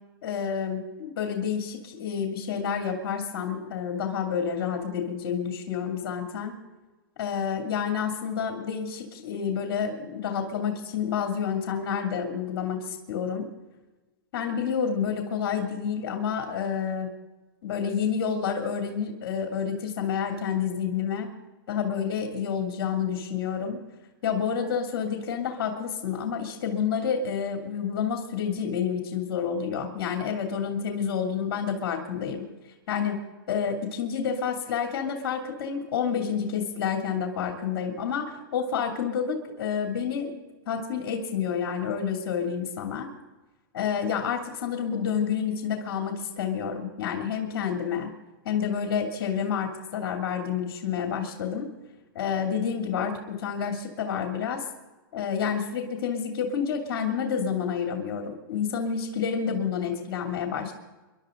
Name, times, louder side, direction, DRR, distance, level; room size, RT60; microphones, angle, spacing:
voice 1, 0.2-6.6 7.2-13.5 14.3-17.1 17.6-21.3 21.7-23.8 24.2-32.4 32.9-33.2 33.5-43.1 43.7-48.1 48.4-51.7 52.1-54.6 55.1-60.7, left 7 dB, 65° left, 3 dB, 2.7 m, -29 dB
26.5 x 12.0 x 3.8 m, 1.2 s
hypercardioid pair, 135°, 12 cm